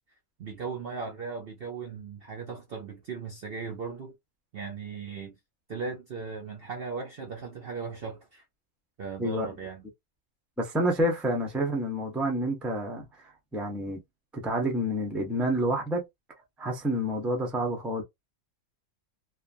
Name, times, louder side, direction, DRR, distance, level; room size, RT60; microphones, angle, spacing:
voice 1, 0.4-4.1 4.5-5.4 5.7-8.4 9.0-9.9, right 5 dB, 55° right, 0.7 m, -37 dB
voice 2, 10.6-13.0 13.5-14.0 14.3-16.0 16.6-18.0, equal, ahead, 0.5 m, -28 dB
3.2 x 2.2 x 2.5 m
omnidirectional pair, 1.5 m